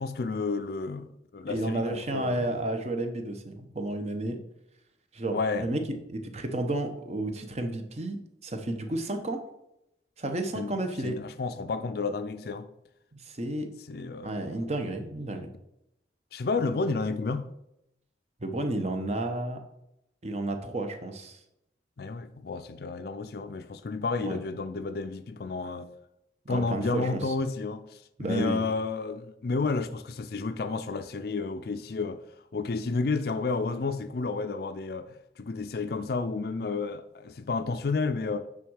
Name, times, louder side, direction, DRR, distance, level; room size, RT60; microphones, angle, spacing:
voice 1, 0.0-2.6 5.3-5.7 10.5-10.8 11.0-12.7 13.9-14.5 16.3-17.5 22.0-25.9 26.5-32.2 32.5-38.5, left 3 dB, 55° left, 0.4 m, -31 dB
voice 2, 1.5-4.4 5.1-5.8 6.1-8.2 8.4-9.4 10.2-11.1 13.3-13.7 14.2-15.5 18.4-19.6 20.2-21.4 24.2-24.4 26.4-27.3 28.2-28.6, right 1 dB, 35° right, 1.0 m, -31 dB
9.2 x 3.7 x 6.3 m
head